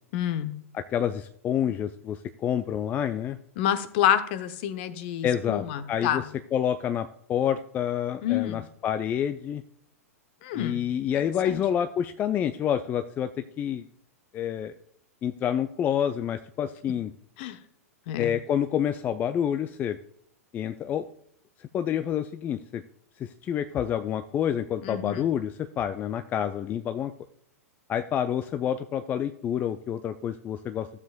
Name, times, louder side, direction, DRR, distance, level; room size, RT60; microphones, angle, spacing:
voice 1, 0.1-0.5 3.6-6.2 8.2-8.6 10.4-10.8 11.1-11.6 17.4-17.6 18.1-18.3 24.8-25.3, left 10 dB, 45° left, 12 dB, 0.7 m, -28 dB
voice 2, 0.7-3.4 5.2-6.2 6.5-9.6 10.5-13.8 14.3-14.7 15.2-17.1 18.2-20.0 20.5-21.1 21.7-22.8 23.2-27.1 27.9-30.9, left 9 dB, 20° left, 10 dB, 0.3 m, -28 dB
15.0 x 7.3 x 2.3 m, 0.67 s
figure-of-eight pair, 100°, 8 cm